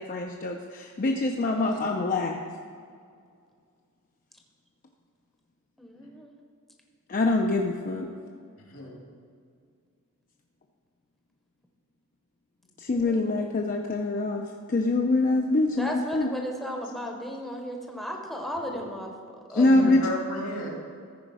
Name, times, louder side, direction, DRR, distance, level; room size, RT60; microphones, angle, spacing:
voice 1, 0.0-2.4 7.1-8.1 12.8-14.4 14.7-16.3 19.6-20.0, left 2 dB, 40° left, 2 dB, 0.5 m, -24 dB
voice 2, 5.8-6.3 12.9-13.2 15.7-19.1 19.5-20.1, equal, ahead, 1 dB, 0.8 m, -35 dB
voice 3, 8.7-9.0 18.7-18.8 19.5-20.7, left 1 dB, 80° left, -2 dB, 2.4 m, -34 dB
14.0 x 5.0 x 4.8 m, 2.2 s
head